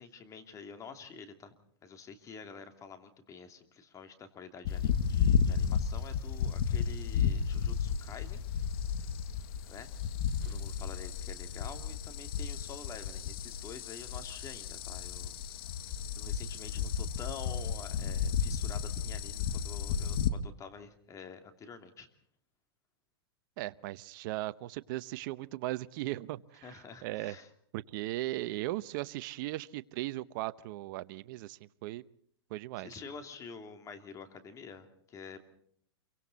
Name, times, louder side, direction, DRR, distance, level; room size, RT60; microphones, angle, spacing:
voice 1, 0.0-1.5 1.8-8.4 9.7-9.9 10.4-15.4 15.9-22.1 26.6-27.5 32.8-35.4, left 5 dB, 25° left, 7 dB, 2.7 m, -48 dB
sound 1, 4.7-20.3, left 7 dB, 60° left, 1.7 m, -33 dB
voice 2, 23.6-26.7 27.0-27.4 27.7-32.0 32.5-32.9, right 17 dB, 50° right, 15 dB, 0.8 m, -37 dB
28.0 x 24.0 x 4.1 m, 0.63 s
hypercardioid pair, 135°, 14 cm